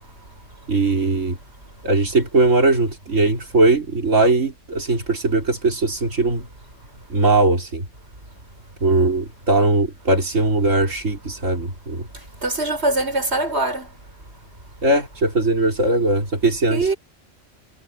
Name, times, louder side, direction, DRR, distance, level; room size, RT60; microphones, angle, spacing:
voice 1, 0.7-1.4 1.8-6.4 7.1-7.8 8.8-12.0 14.8-16.9, right 2 dB, 85° right, 4.4 m, -19 dB
voice 2, 12.4-13.9 16.7-17.0, right 2 dB, 55° right, 6.1 m, -22 dB
omnidirectional pair, 1.3 m